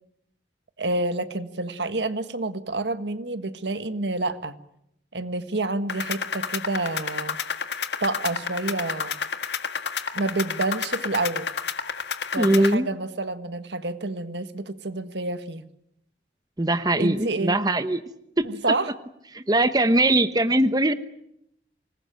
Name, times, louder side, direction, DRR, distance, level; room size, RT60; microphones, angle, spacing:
voice 1, 0.8-4.6 5.1-7.4 8.0-9.1 10.1-11.5 12.3-15.7 17.0-17.6 18.4-18.9, right 2 dB, 80° right, 11 dB, 1.6 m, -28 dB
sound 1, 5.9-12.7, left 6 dB, 80° left, 1.6 m, -31 dB
voice 2, 12.4-12.9 16.6-18.0 18.4-18.5 19.3-20.9, right 1 dB, 20° right, 11 dB, 0.9 m, -21 dB
25.5 x 20.5 x 9.1 m, 0.78 s
head